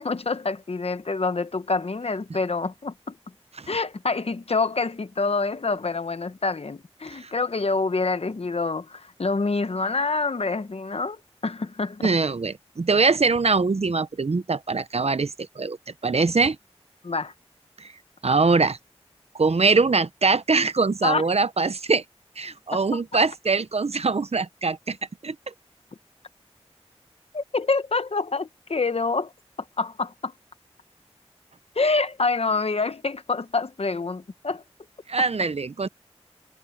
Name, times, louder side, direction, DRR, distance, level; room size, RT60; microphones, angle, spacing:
voice 1, 0.0-3.1 3.7-12.1 17.0-17.3 21.0-21.2 22.7-23.2 27.3-29.3 29.8-30.3 31.7-34.6 35.2-35.3, left 3 dB, 60° left, 1.0 m, -26 dB
voice 2, 12.0-15.8 16.0-16.6 17.8-17.9 18.2-18.8 19.3-22.0 22.4-25.0 25.2-25.3 35.1-35.9, right 4 dB, 65° right, 0.8 m, -23 dB
wide cardioid pair, 45°, 11 cm